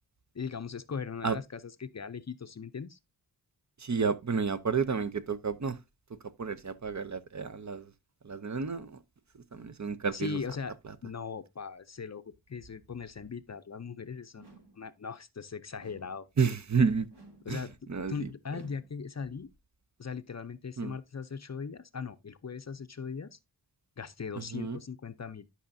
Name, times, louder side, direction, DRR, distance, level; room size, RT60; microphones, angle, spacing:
voice 1, 0.3-3.0 10.1-10.7 11.0-14.5 14.8-16.3 17.4-19.5 20.0-23.4 24.0-25.5, left 5 dB, 40° left, 0.5 m, -39 dB
voice 2, 3.8-5.8 6.4-7.8 8.2-9.0 9.5-10.4 16.4-17.1 17.5-17.6 17.9-18.3 20.8-20.9 24.4-24.8, right 5 dB, 45° right, 0.7 m, -30 dB
sound 1, 14.4-14.9 15.8-16.3 17.1-17.6 18.5-19.0, right 2 dB, 70° right, 2.9 m, -56 dB
11.0 x 5.6 x 2.6 m
wide cardioid pair, 85°, 42 cm